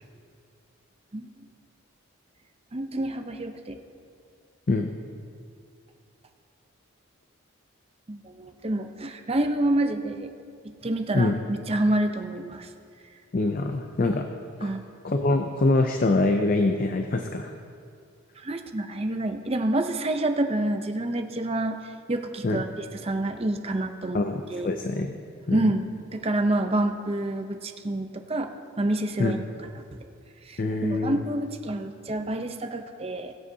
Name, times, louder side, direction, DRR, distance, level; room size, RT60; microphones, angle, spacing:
voice 1, 2.7-3.8 8.1-10.3 10.6-12.7 14.6-14.8 18.4-21.8 22.1-24.2 24.5-24.7 25.5-28.5 28.8-29.4 30.5-33.3, right 1 dB, 25° right, 6 dB, 0.6 m, -28 dB
voice 2, 13.3-14.3 14.6-14.7 15.0-17.5 22.4-22.6 24.1-25.1 25.5-25.7 29.2-29.4 30.6-31.2, left 2 dB, 40° left, 5 dB, 0.5 m, -24 dB
22.0 x 7.8 x 2.8 m, 2.3 s
head